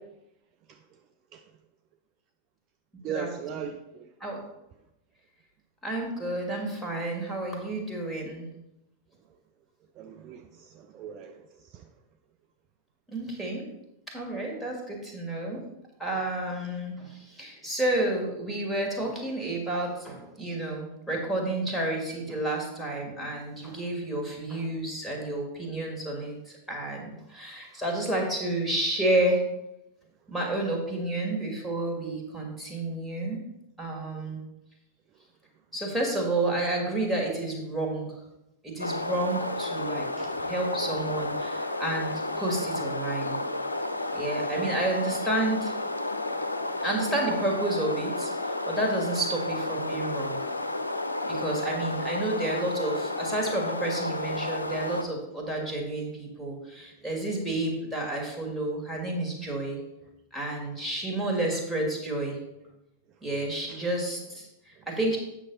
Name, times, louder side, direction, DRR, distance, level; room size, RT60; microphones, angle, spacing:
voice 1, 3.0-4.1 10.0-11.9 40.2-40.4 44.1-44.2 63.7-63.8, right 8 dB, 35° right, 5 dB, 0.5 m, -39 dB
voice 2, 5.8-8.5 13.1-13.6 14.1-15.6 16.0-26.4 26.7-29.4 30.3-33.4 33.8-34.4 35.7-38.1 38.6-43.4 44.1-45.7 46.8-50.4 51.3-59.8 60.3-62.4 63.2-65.2, right 1 dB, ahead, -1 dB, 2.3 m, -30 dB
sound 1, 38.8-55.0, left 2 dB, 80° left, 0.5 m, -31 dB
8.4 x 6.3 x 4.2 m, 0.89 s
figure-of-eight pair, 90°, 0 cm